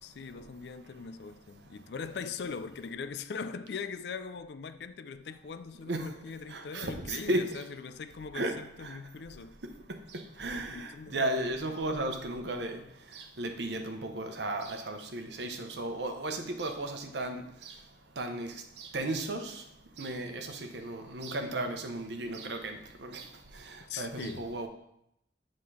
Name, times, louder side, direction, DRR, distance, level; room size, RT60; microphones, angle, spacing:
voice 1, 0.0-9.6 10.7-11.3 23.9-24.5, left 5 dB, 65° left, 0.4 m, -41 dB
voice 2, 6.7-7.4 8.3-8.5 10.4-10.7 11.1-12.7 13.4-17.4 18.2-18.5 18.9-19.4 20.0-20.3 20.8-22.6 24.0-24.7, right 1 dB, 75° right, 0.9 m, -33 dB
7.7 x 3.7 x 4.9 m
head